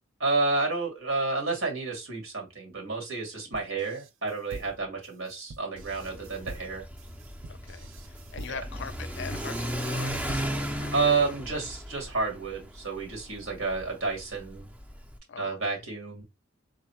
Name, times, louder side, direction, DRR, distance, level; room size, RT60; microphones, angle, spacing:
voice 1, 0.2-6.8 8.5-8.6 10.9-14.7 15.4-16.2, right 3 dB, 85° right, 2.3 m, -30 dB
sound 1, 3.5-10.8, right 2 dB, 65° right, 0.5 m, -46 dB
Car / Accelerating revving vroom, 5.8-15.2, equal, 10° right, 0.4 m, -36 dB
voice 2, 7.5-7.9 8.3-11.1 15.3-15.8, left 6 dB, 60° left, 0.4 m, -42 dB
3.9 x 2.1 x 4.3 m
head